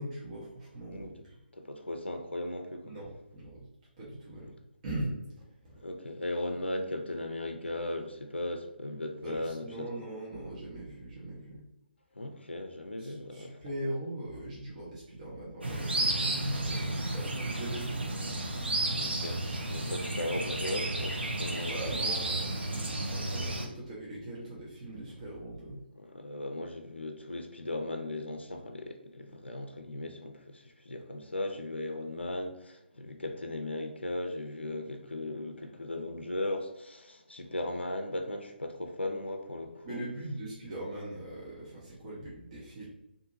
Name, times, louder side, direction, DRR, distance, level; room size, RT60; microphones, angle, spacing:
voice 1, 0.0-1.4 2.8-3.7 4.0-4.5 4.8-5.7 9.2-11.6 13.0-18.2 21.7-25.8 39.8-42.9, right 1 dB, 35° right, -6 dB, 0.7 m, -40 dB
voice 2, 1.5-2.9 5.8-9.9 12.1-13.6 19.0-19.4 19.7-21.8 26.0-40.0, left 1 dB, 85° left, 4 dB, 0.4 m, -37 dB
sound 1, 15.6-23.7, right 2 dB, 70° right, 0.6 m, -32 dB
2.7 x 2.5 x 2.5 m, 0.88 s
figure-of-eight pair, 145°, 6 cm